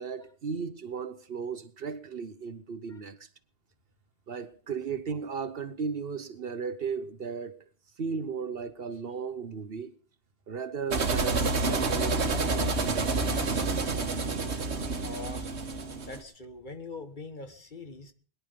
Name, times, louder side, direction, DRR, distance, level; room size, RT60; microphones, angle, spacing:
voice 1, 0.0-3.3 4.3-7.6 8.0-9.9 10.5-12.8 14.3-14.6, right 5 dB, 60° right, 1.1 m, -36 dB
sound 1, 10.9-16.2, right 3 dB, 75° right, 1.7 m, -28 dB
voice 2, 15.0-15.5 16.0-18.1, left 3 dB, 45° left, 1.6 m, -43 dB
21.5 x 10.5 x 5.1 m
omnidirectional pair, 1.1 m